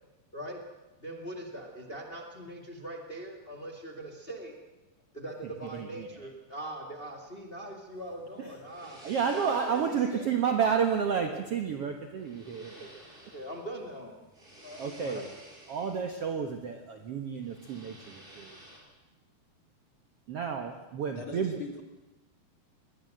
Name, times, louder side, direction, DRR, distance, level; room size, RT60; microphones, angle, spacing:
voice 1, 1.0-4.6 5.1-9.0 9.3-10.4 11.1-11.9 12.7-12.9 13.2-14.1 14.6-15.2, right 1 dB, 20° left, 3 dB, 1.6 m, -41 dB
sound 1, 7.9-18.8, right 1 dB, 15° right, 4.9 m, -54 dB
voice 2, 9.0-12.8 14.8-15.2 15.7-18.6 20.3-21.6, right 7 dB, 60° right, 5 dB, 1.6 m, -30 dB
voice 3, 21.2-21.8, left 4 dB, 40° left, 4 dB, 2.3 m, -41 dB
22.0 x 18.5 x 7.8 m, 1.0 s
omnidirectional pair, 4.2 m